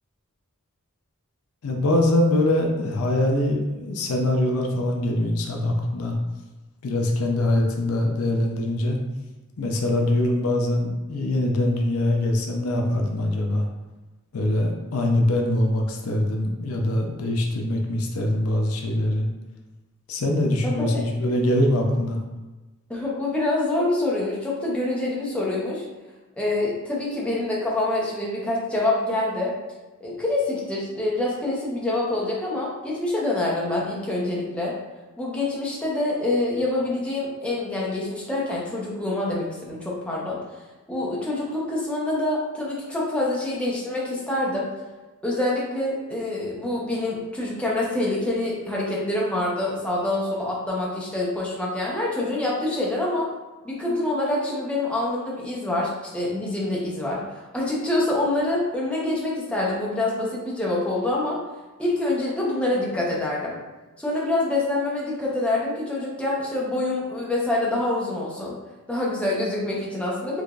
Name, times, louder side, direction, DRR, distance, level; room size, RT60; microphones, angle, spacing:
voice 1, 1.6-6.2 6.8-9.0 9.6-13.7 14.3-19.3 20.1-22.2, left 1 dB, 70° left, 2 dB, 0.5 m, -23 dB
voice 2, 22.9-25.8 26.4-29.5 30.0-34.7 35.2-40.4 40.9-44.7 45.2-53.3 53.6-57.2 57.5-61.4 61.8-63.6 64.0-68.6 68.9-70.4, left 2 dB, 5° left, -5 dB, 0.7 m, -26 dB
4.7 x 2.4 x 2.4 m, 1.2 s
head